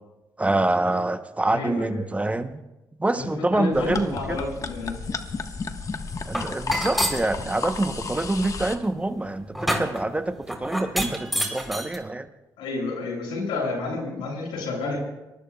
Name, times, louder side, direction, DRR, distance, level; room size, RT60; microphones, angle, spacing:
voice 1, 0.4-2.6 3.0-4.4 6.3-12.3, right 2 dB, 15° right, 9 dB, 0.9 m, -26 dB
voice 2, 1.5-2.0 3.1-5.0 12.6-15.0, left 3 dB, 85° left, -1 dB, 7.0 m, -30 dB
sound 1, 3.7-8.8, left 4 dB, 40° left, 1.3 m, -32 dB
sound 2, 6.3-7.3 8.0-12.0, equal, ahead, 3.5 m, -29 dB
26.0 x 20.0 x 2.3 m, 1.0 s
supercardioid pair, 65°, 8 cm